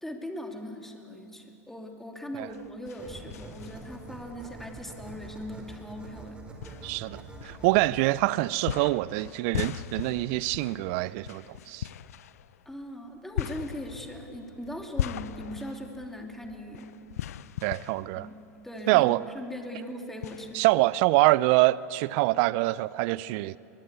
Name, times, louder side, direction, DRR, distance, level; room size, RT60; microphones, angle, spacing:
voice 1, 0.0-6.4 12.7-16.9 18.1-19.1 19.3-20.6, equal, 5° left, 2.9 m, -40 dB
sound 1, 2.4-4.2 4.7-4.8 5.7-5.8 6.6-8.1 8.7-19.0 19.4-19.5 20.2-21.3, left 11 dB, 75° left, 0.6 m, -38 dB
sound 2, 3.0-11.5, right 2 dB, 10° right, 5.0 m, -46 dB
voice 2, 6.8-11.9 17.6-18.3 18.9-19.2 20.5-23.6, right 19 dB, 55° right, 0.5 m, -25 dB
22.5 x 21.0 x 8.3 m
hypercardioid pair, 95°, 8 cm